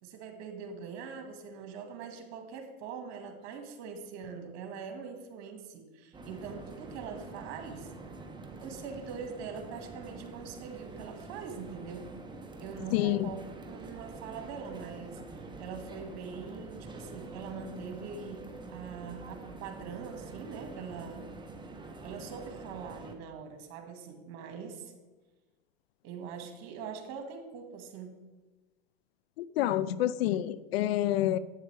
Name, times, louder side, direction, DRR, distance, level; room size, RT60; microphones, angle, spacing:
voice 1, 0.0-7.9 8.6-12.1 12.6-15.2 15.6-21.3 22.0-24.9 26.0-28.2, right 6 dB, 55° right, 1.9 m, -43 dB
sound 1, 6.1-23.2, right 3 dB, 15° right, 1.3 m, -46 dB
voice 2, 12.9-13.3 29.4-31.4, left 13 dB, 70° left, 0.5 m, -28 dB
11.0 x 8.8 x 3.4 m
hypercardioid pair, 90°, 32 cm